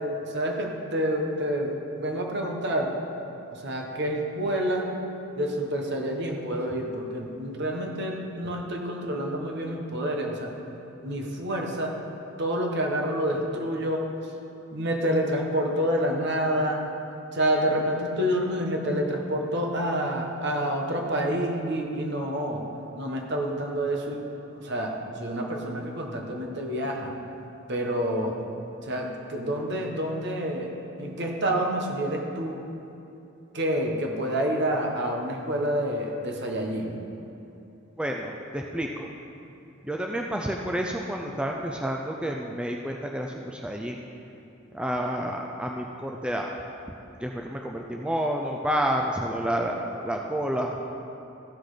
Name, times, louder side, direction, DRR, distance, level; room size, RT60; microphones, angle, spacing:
voice 1, 0.0-3.0 3.5-4.9 5.4-10.5 11.0-12.0 12.4-14.1 14.7-16.8 17.3-22.6 23.0-24.2 24.5-24.9 25.2-27.1 27.7-28.4 28.8-30.7 31.0-32.6 33.5-36.9, equal, 55° right, 1 dB, 1.3 m, -28 dB
voice 2, 38.0-39.1 39.8-44.0 44.7-46.5 47.2-50.8, equal, 5° right, 1 dB, 0.4 m, -29 dB
14.5 x 6.2 x 5.0 m, 2.9 s
head